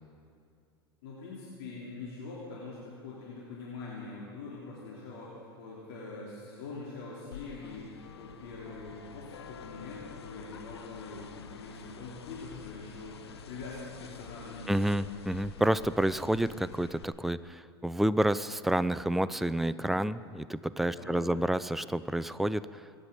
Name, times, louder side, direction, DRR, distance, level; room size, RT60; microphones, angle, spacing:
voice 1, 1.0-13.1 13.5-15.0 20.9-21.5, left 3 dB, 60° left, -6 dB, 3.2 m, -44 dB
sound 1, 7.3-17.0, left 7 dB, 75° left, 1.0 m, -48 dB
voice 2, 14.7-22.8, right 1 dB, ahead, 14 dB, 0.4 m, -29 dB
23.5 x 9.9 x 5.2 m, 2.4 s
figure-of-eight pair, 85°, 14 cm